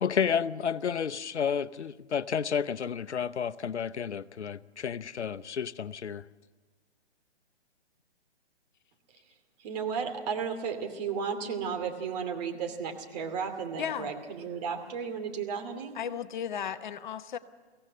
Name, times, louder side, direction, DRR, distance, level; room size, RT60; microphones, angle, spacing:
voice 1, 0.0-6.2, left 7 dB, 85° left, 0.8 m, -31 dB
voice 2, 9.6-15.9, right 6 dB, 35° right, 2.7 m, -34 dB
voice 3, 13.8-14.1 15.9-17.4, left 8 dB, 45° left, 0.9 m, -35 dB
23.5 x 17.0 x 7.5 m
hypercardioid pair, 145°, 33 cm